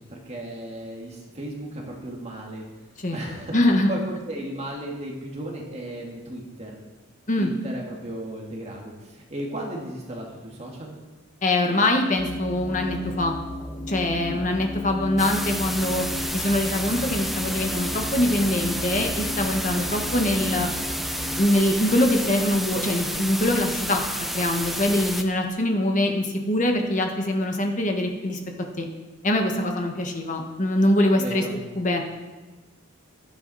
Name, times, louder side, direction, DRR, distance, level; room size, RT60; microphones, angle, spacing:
voice 1, 0.0-2.6 3.1-3.5 3.9-6.8 7.4-11.0 14.2-14.4 31.1-31.5, right 1 dB, 30° right, -1 dB, 1.9 m, -35 dB
voice 2, 3.5-3.9 7.3-7.5 11.4-13.3 13.9-20.7 21.3-24.0 24.3-28.4 28.8-28.9 29.2-31.4 31.8-32.0, left 1 dB, 35° left, 3 dB, 1.5 m, -23 dB
sound 1, 12.2-21.4, left 2 dB, 15° left, 1.4 m, -34 dB
sound 2, 15.2-25.2, equal, ahead, 0.6 m, -30 dB
15.5 x 12.0 x 4.2 m, 1.2 s
head